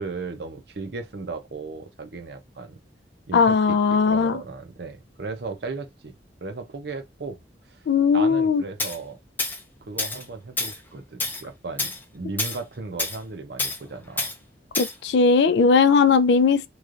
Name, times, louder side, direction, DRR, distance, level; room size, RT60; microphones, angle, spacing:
voice 1, 0.0-2.8 3.3-6.1 6.4-7.4 7.7-7.8 8.1-9.2 9.8-14.3, right 3 dB, 65° right, 0.7 m, -36 dB
voice 2, 3.3-4.4 7.9-8.6 14.8-16.7, left 5 dB, 70° left, 0.4 m, -18 dB
Tools, 8.8-9.0 9.4-9.6 10.0-10.2 10.6-10.8 11.2-11.4 11.8-12.0 12.4-12.6 13.0-13.2 13.6-13.8 14.2-14.3 14.7-14.9, left 2 dB, 10° left, 0.5 m, -28 dB
3.1 x 2.4 x 2.5 m
head